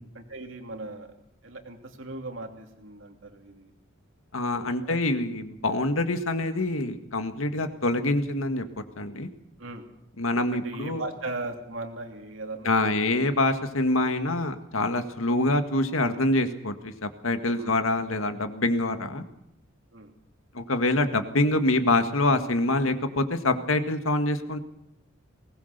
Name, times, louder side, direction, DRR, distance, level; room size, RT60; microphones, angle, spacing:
voice 1, 0.1-1.1 1.4-3.7 4.5-5.0 9.6-9.8 10.5-13.0 13.3-13.4 17.5-17.8 19.9-20.1, right 2 dB, 70° right, 3 dB, 3.0 m, -38 dB
voice 2, 4.3-8.6 9.0-9.3 10.2-11.0 12.7-19.2 20.5-24.6, left 2 dB, 85° left, 8 dB, 1.9 m, -25 dB
20.5 x 19.0 x 6.8 m, 0.83 s
head